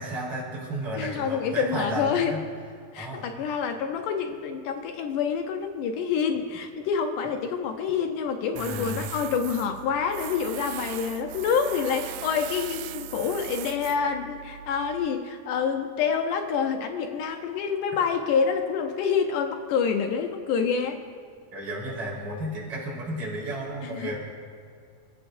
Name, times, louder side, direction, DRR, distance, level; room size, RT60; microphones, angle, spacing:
voice 1, 0.0-2.4 3.0-3.2 8.5-9.1 21.5-24.2, right 1 dB, 40° right, -5 dB, 4.8 m, -33 dB
voice 2, 1.0-2.4 2.9-21.0 23.8-24.2, left 6 dB, 75° left, 5 dB, 2.1 m, -27 dB
Tools, 8.6-15.1, right 11 dB, 90° right, 1.7 m, -39 dB
29.0 x 14.0 x 2.6 m, 2.1 s
omnidirectional pair, 4.0 m